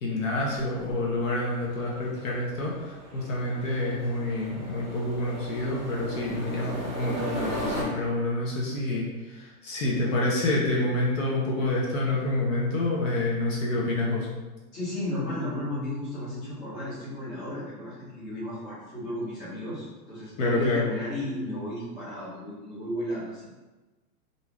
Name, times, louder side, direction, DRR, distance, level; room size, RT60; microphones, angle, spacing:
voice 1, 0.0-14.3 20.4-20.8, left 2 dB, 60° left, -3 dB, 0.7 m, -28 dB
sound 1, 0.6-7.8, equal, 30° right, 0.6 m, -37 dB
voice 2, 14.7-23.5, left 1 dB, 20° left, -10 dB, 0.7 m, -34 dB
2.6 x 2.2 x 3.1 m, 1.2 s
supercardioid pair, 175°, 46 cm